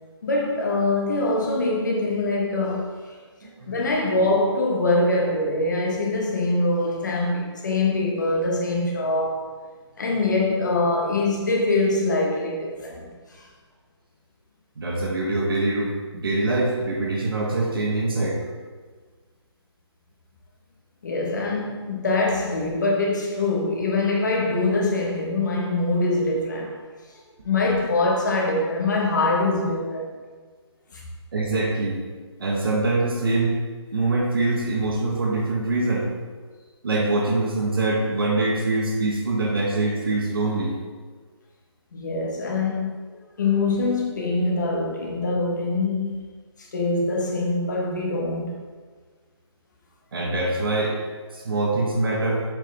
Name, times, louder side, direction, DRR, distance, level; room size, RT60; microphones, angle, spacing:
voice 1, 0.2-2.9 3.7-9.5 10.0-13.4 21.0-26.8 27.4-30.1 30.9-31.0 41.9-42.9 43.4-46.2 46.6-48.6, left 2 dB, 40° left, 1.2 m, -23 dB
voice 2, 3.4-3.9 14.8-18.4 31.3-32.0 32.4-33.6 33.9-36.1 36.8-40.8 50.1-51.0 51.3-52.4, right 2 dB, 50° right, 1.3 m, -24 dB
7.0 x 4.8 x 3.5 m
hypercardioid pair, 175°, 15 cm